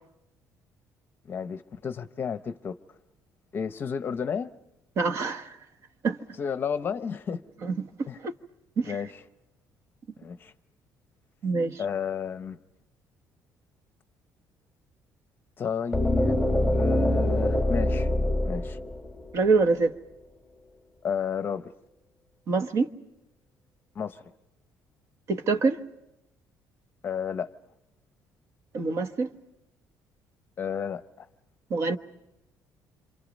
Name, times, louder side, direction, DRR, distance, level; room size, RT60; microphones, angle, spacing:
voice 1, 1.3-2.8 3.5-4.5 6.4-7.4 8.1-8.2 8.9-9.1 10.2-10.5 11.8-12.6 15.6-18.1 18.4-18.8 21.0-21.7 23.9-24.2 27.0-27.5 30.6-31.0, left 7 dB, 30° left, 0.8 m, -32 dB
voice 2, 5.0-5.6 6.0-6.2 7.6-7.7 8.2-8.3 8.8-8.9 11.4-11.8 19.3-19.9 22.5-22.9 25.3-25.8 28.7-29.3 31.7-32.0, right 4 dB, 45° right, 1.2 m, -25 dB
sound 1, 15.9-19.8, left 1 dB, ahead, 1.5 m, -25 dB
27.5 x 27.0 x 5.3 m
cardioid pair, 160°, 7 cm